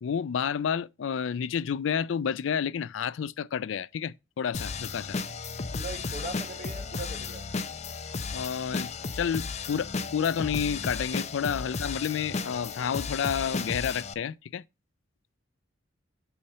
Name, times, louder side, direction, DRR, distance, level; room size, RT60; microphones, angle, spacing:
voice 1, 0.0-5.2 8.3-14.6, left 7 dB, 85° left, 0.4 m, -30 dB
sound 1, 4.5-14.1, left 4 dB, 35° left, 0.6 m, -34 dB
voice 2, 5.7-7.4, right 2 dB, 45° right, 2.5 m, -39 dB
7.0 x 4.2 x 6.4 m
head